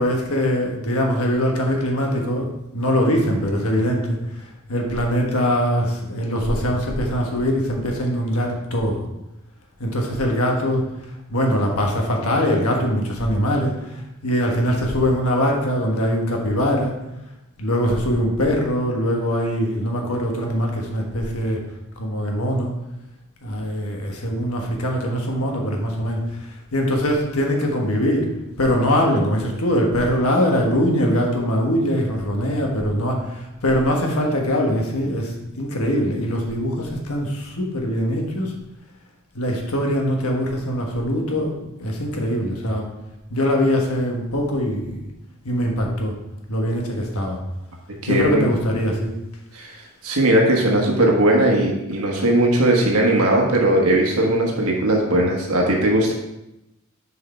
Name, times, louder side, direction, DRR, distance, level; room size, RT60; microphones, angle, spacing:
voice 1, 0.0-2.5 2.7-9.0 9.8-10.8 11.3-16.9 17.6-21.6 22.0-22.7 23.4-28.3 28.6-38.5 39.3-42.9 43.3-45.0 45.4-46.1 46.5-47.4 48.1-49.1, equal, 85° left, 1 dB, 1.4 m, -22 dB
voice 2, 48.0-48.5 49.5-56.1, right 1 dB, 85° right, 0 dB, 1.2 m, -18 dB
6.8 x 4.8 x 4.3 m, 0.90 s
head